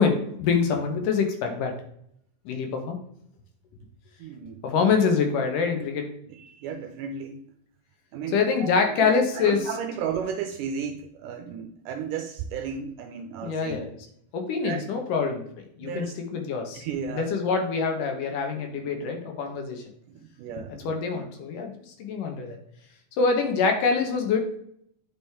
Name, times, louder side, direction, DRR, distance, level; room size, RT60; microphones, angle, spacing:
voice 1, 0.0-1.7 2.5-3.0 4.6-6.1 8.3-9.6 13.4-13.9 14.3-15.5 15.8-16.8 17.1-19.8 20.8-21.7 22.0-22.6 23.2-24.5, left 5 dB, 70° left, 3 dB, 2.6 m, -25 dB
voice 2, 4.2-4.7 6.3-7.4 8.1-8.7 9.0-13.9 14.6-14.8 15.8-16.1 16.7-17.3 20.2-20.8 21.1-21.2, right 7 dB, 80° right, 7 dB, 1.9 m, -34 dB
9.1 x 5.0 x 3.5 m, 0.70 s
omnidirectional pair, 4.2 m